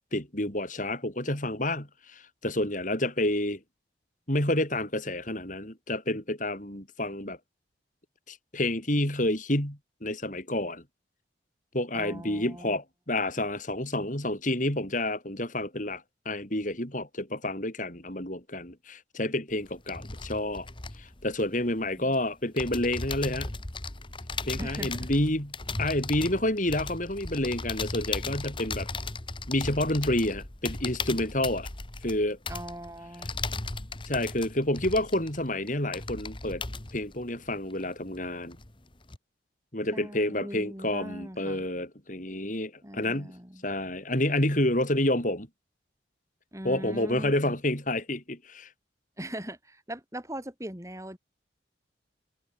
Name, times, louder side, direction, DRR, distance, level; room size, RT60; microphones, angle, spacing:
voice 1, 0.0-3.6 4.3-7.4 8.3-10.8 11.7-20.7 21.0-23.5 24.4-28.9 29.5-31.7 32.0-32.4 34.1-36.6 36.9-38.6 39.7-43.3 43.6-45.5 46.6-48.7, left 1 dB, 45° left, 5.5 m, -29 dB
voice 2, 11.9-12.8 22.0-22.2 24.6-25.1 32.5-33.3 39.9-41.6 42.8-43.6 46.5-47.5 49.2-51.2, right 1 dB, 15° right, 4.0 m, -40 dB
sound 1, 19.5-22.1 22.6-38.2 38.5-39.2, left 3 dB, 25° left, 1.6 m, -37 dB
head